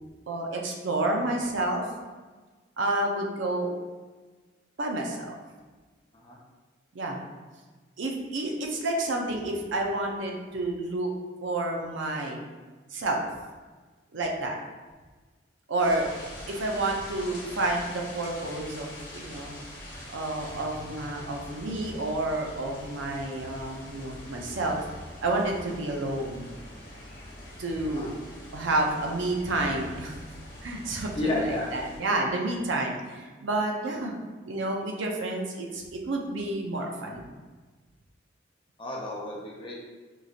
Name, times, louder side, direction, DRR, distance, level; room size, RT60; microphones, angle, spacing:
voice 1, 0.3-1.8 2.8-3.7 4.8-5.4 6.9-7.2 8.0-11.1 11.4-12.4 12.9-13.2 14.1-14.6 15.7-16.1 16.5-19.6 20.1-24.8 25.2-26.5 27.6-28.1 28.5-30.2 30.6-34.2 34.5-37.3, right 2 dB, 75° right, 1 dB, 0.5 m, -30 dB
sound 1, 15.8-32.0, left 1 dB, 45° left, 1.2 m, -44 dB
voice 2, 31.1-31.7 38.8-39.7, left 2 dB, 25° left, -3 dB, 0.6 m, -31 dB
4.6 x 2.7 x 2.4 m, 1.3 s
head